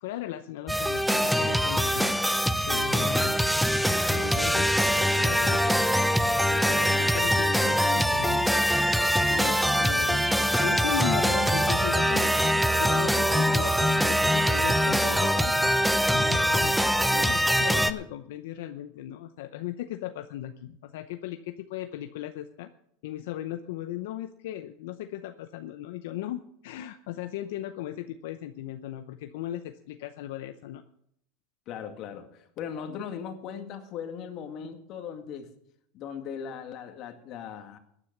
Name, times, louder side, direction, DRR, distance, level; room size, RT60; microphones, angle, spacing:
voice 1, 0.0-3.3 3.9-4.7 5.1-8.5 9.3-10.3 10.6-15.5 15.8-16.7 17.1-22.7 23.0-30.8, left 12 dB, 75° left, 8 dB, 0.7 m, -37 dB
sound 1, 0.7-17.9, equal, ahead, 0.7 m, -23 dB
voice 2, 2.7-3.1 16.1-16.3 16.6-16.7 31.7-35.5 35.9-37.8, left 7 dB, 50° left, 6 dB, 2.0 m, -39 dB
15.0 x 9.8 x 6.0 m, 0.71 s
supercardioid pair, 125°, 0 cm